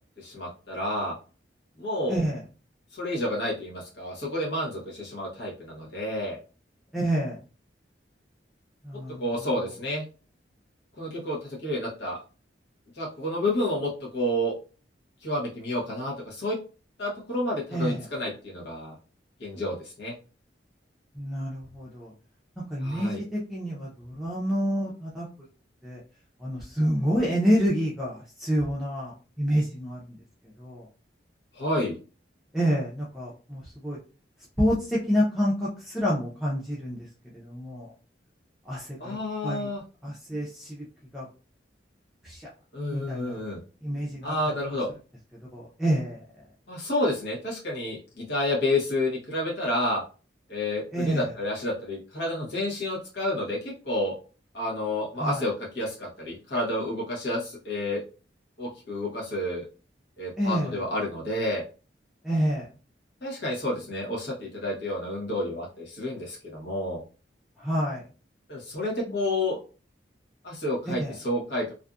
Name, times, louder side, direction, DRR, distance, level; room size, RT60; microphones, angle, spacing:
voice 1, 0.2-1.1 1.8-2.2 2.9-6.4 9.2-10.0 11.0-12.2 12.9-14.5 15.2-16.6 17.0-19.0 19.4-20.1 22.8-23.2 31.5-32.0 39.0-39.8 42.7-43.6 44.2-44.9 46.7-50.0 50.5-54.1 54.5-58.0 58.6-59.7 60.2-61.6 63.2-67.0 68.5-69.6 70.4-71.7, left 1 dB, 70° left, -4 dB, 0.9 m, -30 dB
voice 2, 2.1-2.4 6.9-7.4 8.8-9.2 17.7-18.0 21.2-22.1 22.7-25.3 25.8-26.0 26.4-30.2 30.6-30.9 32.5-34.0 34.6-37.0 37.3-37.9 38.7-39.2 39.4-39.7 40.0-40.8 41.1-41.2 42.2-42.5 42.9-43.4 43.8-44.3 45.5-46.2 50.9-51.2 55.2-55.4 60.4-60.8 62.2-62.6 67.6-68.1 71.0-71.1, equal, ahead, -7 dB, 0.5 m, -28 dB
2.5 x 2.4 x 2.3 m, 0.35 s
head